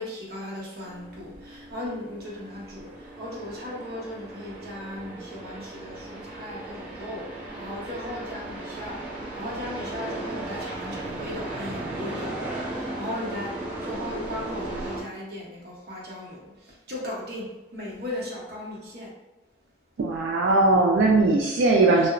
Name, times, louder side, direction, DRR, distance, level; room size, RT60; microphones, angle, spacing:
voice 1, 0.0-19.1, left 1 dB, 55° right, -4 dB, 0.8 m, -37 dB
sound 1, 0.8-15.0, right 2 dB, 5° right, 0.6 m, -36 dB
voice 2, 20.0-22.1, right 2 dB, 90° right, -1 dB, 0.3 m, -19 dB
2.8 x 2.1 x 2.4 m, 1.1 s
head